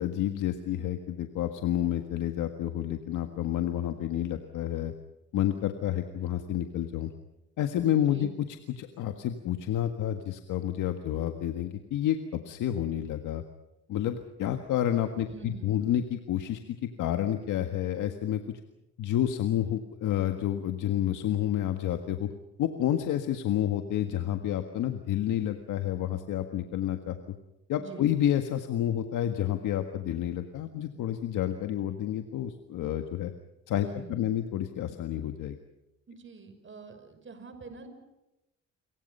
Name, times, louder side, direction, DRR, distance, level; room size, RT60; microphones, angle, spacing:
voice 1, 0.0-4.9 5.3-7.1 7.6-8.3 8.8-13.4 13.9-18.6 19.0-22.3 22.6-27.2 27.7-33.3 33.7-35.6, left 11 dB, 85° left, 6 dB, 1.7 m, -29 dB
voice 2, 8.0-8.3 15.2-15.8 27.8-28.1 33.8-34.4 36.1-37.9, right 4 dB, 40° right, 8 dB, 5.9 m, -46 dB
30.0 x 23.5 x 5.6 m, 0.95 s
cardioid pair, 90°, 30 cm